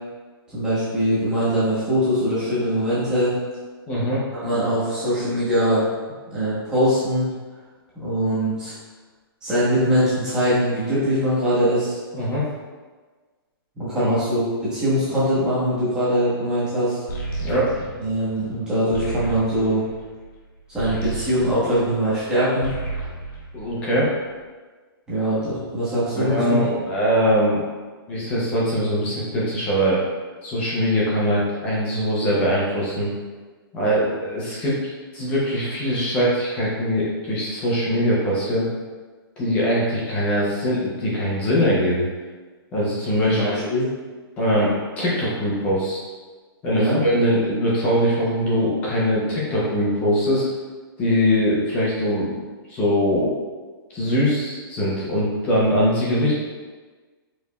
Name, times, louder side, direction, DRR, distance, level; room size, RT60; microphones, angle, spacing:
voice 1, 0.5-3.3 4.3-5.8 6.3-7.3 8.0-8.7 9.4-12.0 13.8-17.0 18.0-19.8 20.7-22.7 25.1-26.6 43.3-43.9 46.7-47.0, equal, 5° right, -11 dB, 0.9 m, -22 dB
voice 2, 3.9-4.2 12.1-12.4 14.0-14.1 17.4-17.7 23.5-24.1 26.2-27.6 28.1-30.0 30.4-33.1 33.7-38.7 39.4-42.1 42.7-43.4 44.4-46.0 46.6-50.5 51.0-52.3 52.7-53.3 53.9-56.3, equal, 10° left, -6 dB, 0.5 m, -22 dB
sound 1, 17.1-22.3 22.5-24.3, right 3 dB, 50° left, 1.0 m, -33 dB
4.9 x 3.2 x 2.2 m, 1.4 s
hypercardioid pair, 175°, 13 cm